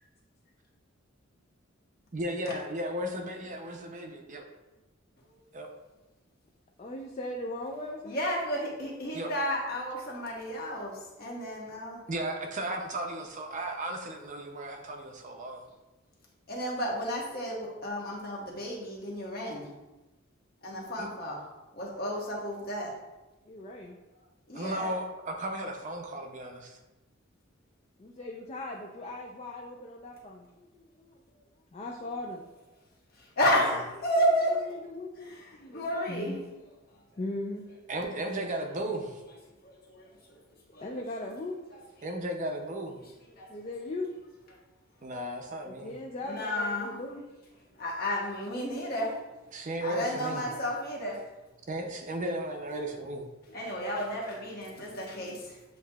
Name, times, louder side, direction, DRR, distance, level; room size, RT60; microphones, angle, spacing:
voice 1, 2.1-4.4 5.5-5.7 9.1-9.3 12.1-15.6 21.0-21.1 24.5-26.8 37.9-39.2 42.0-43.0 45.0-45.9 49.5-50.5 51.7-53.2, right 1 dB, 40° right, 3 dB, 0.5 m, -35 dB
voice 2, 6.8-8.2 23.4-24.0 28.0-31.4 31.7-32.4 34.4-36.5 37.2-37.7 40.8-41.6 43.5-44.1 45.7-47.2 52.9-53.2 53.5-53.6 54.7-55.4, left 2 dB, 30° left, 0 dB, 0.4 m, -39 dB
voice 3, 8.0-12.0 16.5-19.7 20.6-21.4 21.7-22.9 24.5-24.9 33.4-34.6 35.2-35.4 35.7-36.4 39.6-40.4 40.7-40.8 43.4-43.5 46.3-46.9 47.8-49.2 49.8-51.2 53.5-55.5, equal, 50° left, -3 dB, 1.1 m, -32 dB
7.4 x 2.8 x 2.3 m, 1.1 s
head